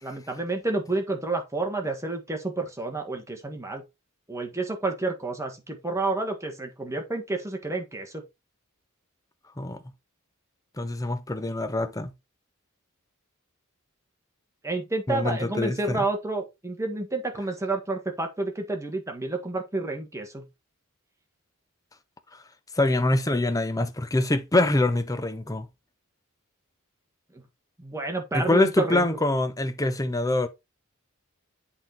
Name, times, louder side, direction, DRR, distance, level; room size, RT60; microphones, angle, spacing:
voice 1, 0.0-3.8 4.3-8.2 14.6-20.4 27.8-29.0, right 3 dB, 15° right, 1.5 m, -30 dB
voice 2, 10.8-12.1 15.1-16.0 22.8-25.7 28.3-30.5, left 2 dB, 15° left, 0.7 m, -24 dB
8.0 x 4.0 x 4.4 m
head